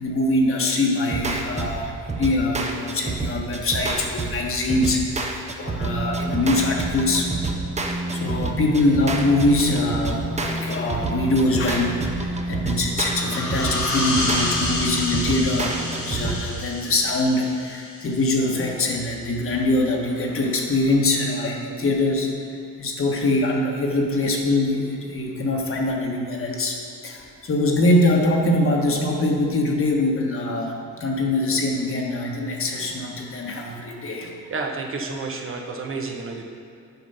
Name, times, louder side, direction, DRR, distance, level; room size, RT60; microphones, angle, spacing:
voice 1, 0.0-7.3 7.8-22.3 22.8-34.3, left 2 dB, 45° left, 0 dB, 1.3 m, -23 dB
sound 1, 1.1-16.4, right 2 dB, 20° right, 0.8 m, -28 dB
sound 2, 13.0-18.4, left 2 dB, 80° left, 1.7 m, -29 dB
voice 2, 34.5-36.5, right 3 dB, 45° right, 2 dB, 1.0 m, -30 dB
8.3 x 5.1 x 5.5 m, 2.5 s
cardioid pair, 90°, 30 cm